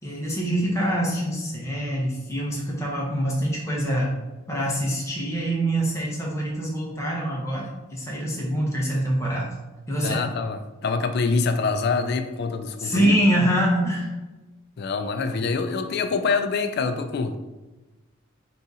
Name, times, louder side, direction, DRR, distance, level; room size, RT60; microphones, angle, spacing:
voice 1, 0.0-4.2 4.5-9.5 9.9-10.2 12.8-14.1, right 1 dB, 15° left, -4 dB, 0.8 m, -25 dB
voice 2, 10.0-13.1 14.8-17.4, left 4 dB, 55° left, 8 dB, 0.3 m, -25 dB
3.6 x 2.8 x 3.9 m, 1.1 s
head